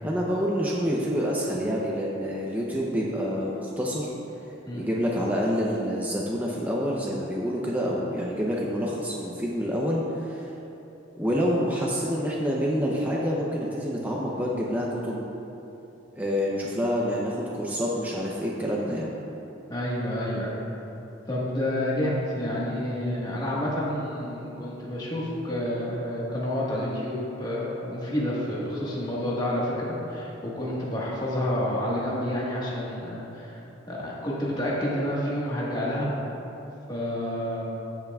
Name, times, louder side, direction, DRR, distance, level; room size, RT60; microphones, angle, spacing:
voice 1, 0.0-4.1 4.7-10.5 11.2-15.2 16.2-19.1, equal, 10° right, -4 dB, 0.6 m, -27 dB
voice 2, 19.7-20.6 21.3-33.6 33.9-36.1 36.9-37.6, left 1 dB, 20° left, -6 dB, 1.4 m, -29 dB
15.5 x 5.7 x 2.3 m, 3.0 s
head